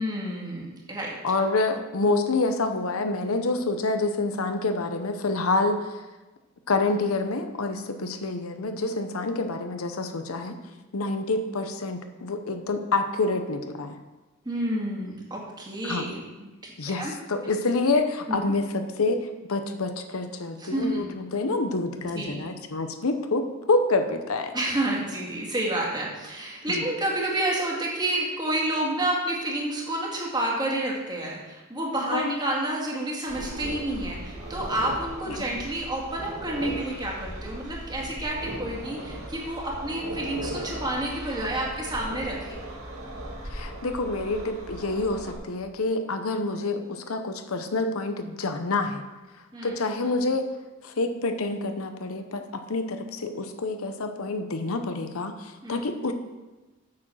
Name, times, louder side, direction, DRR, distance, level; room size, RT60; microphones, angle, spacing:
voice 1, 0.0-1.1 14.4-16.7 17.0-17.1 18.3-18.4 20.6-21.1 22.0-22.5 24.5-42.6 49.5-49.7 55.6-55.8, right 1 dB, 20° right, -3 dB, 2.2 m, -29 dB
voice 2, 1.2-6.0 6.7-10.5 10.9-14.0 15.8-16.1 16.8-24.5 26.7-26.8 32.1-32.3 35.3-35.5 43.5-49.0 49.6-50.5 50.8-56.1, left 3 dB, 75° left, 7 dB, 0.8 m, -27 dB
sound 1, 33.3-45.4, right 1 dB, 75° right, 2.5 m, -37 dB
8.6 x 6.2 x 6.3 m, 1.2 s
head